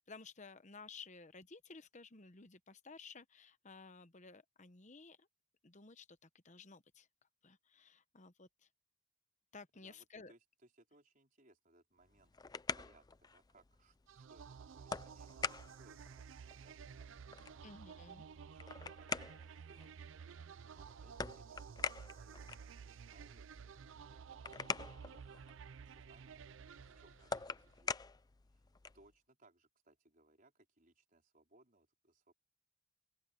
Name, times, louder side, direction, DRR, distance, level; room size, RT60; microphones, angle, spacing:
voice 1, 0.1-5.3 5.6-7.1 7.4-8.7 9.5-10.3 17.6-18.2, left 4 dB, 35° left, 1.0 m, -55 dB
voice 2, 9.7-12.3 12.7-17.6 18.0-20.3 20.7-23.8 24.1-25.2 25.8-26.4 26.9-28.2 28.5-28.6 28.9-32.3, right 2 dB, 40° right, 4.8 m, -68 dB
sound 1, 12.0-29.1, left 5 dB, 20° left, 0.4 m, -46 dB
sound 2, 14.1-27.7, right 6 dB, 60° right, 0.4 m, -53 dB
open air
head